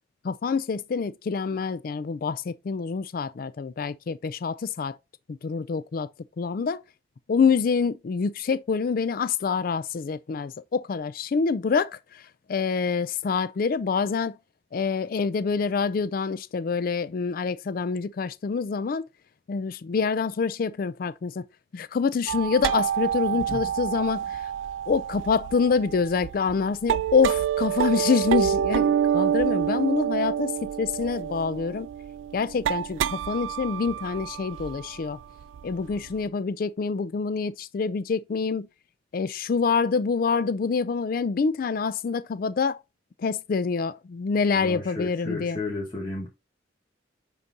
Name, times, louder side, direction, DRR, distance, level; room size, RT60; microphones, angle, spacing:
voice 1, 0.2-5.0 5.3-6.1 6.4-6.8 7.3-12.2 12.5-14.4 14.7-19.1 19.5-21.4 21.7-24.5 24.9-31.9 32.3-35.2 35.6-38.7 39.1-42.8 43.2-45.6, left 5 dB, 50° left, 0.4 m, -26 dB
sound 1, 22.3-36.1, right 9 dB, 85° right, 0.3 m, -28 dB
voice 2, 44.5-46.3, left 2 dB, 25° left, 1.2 m, -33 dB
9.7 x 3.9 x 2.7 m
head